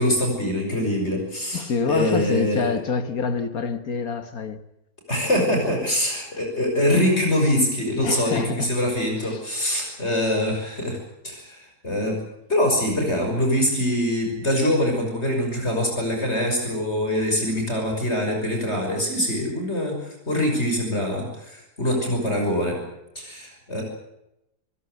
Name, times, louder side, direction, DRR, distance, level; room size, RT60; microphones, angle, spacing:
voice 1, 0.0-2.6 5.1-11.0 11.2-12.2 12.5-22.8 23.1-23.8, left 1 dB, 40° left, 6.4 m, -24 dB
voice 2, 1.5-4.6 8.0-8.7 9.2-9.4, left 5 dB, 60° left, 1.9 m, -26 dB
27.0 x 16.5 x 8.1 m
omnidirectional pair, 1.7 m